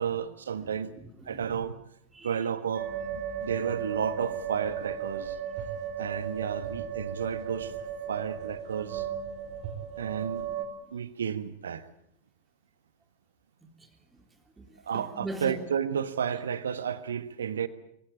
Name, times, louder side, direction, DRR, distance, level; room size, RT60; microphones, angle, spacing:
voice 1, 0.0-0.9 1.3-1.7 2.2-5.4 6.0-7.7 8.1-9.1 10.0-10.5 10.9-11.9 14.8-17.7, right 7 dB, 65° right, 14 dB, 1.5 m, -32 dB
voice 2, 0.6-1.6 2.1-2.5 13.6-14.3 14.6-15.6, right 2 dB, 10° right, 6 dB, 3.4 m, -42 dB
sound 1, 2.7-10.7, right 8 dB, 40° right, 4.7 m, -36 dB
24.0 x 16.5 x 8.6 m, 0.73 s
figure-of-eight pair, 90°, 0 cm